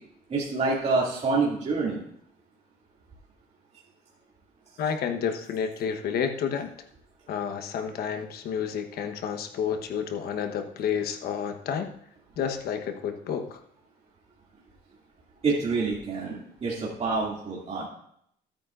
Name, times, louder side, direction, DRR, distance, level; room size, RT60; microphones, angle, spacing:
voice 1, 0.3-2.0 15.4-17.9, right 3 dB, 40° right, -5 dB, 2.6 m, -27 dB
voice 2, 4.8-6.7 7.3-11.9 12.4-13.6, left 7 dB, 65° left, 6 dB, 1.2 m, -30 dB
14.0 x 8.9 x 2.6 m, 0.70 s
cardioid pair, 110°, 17 cm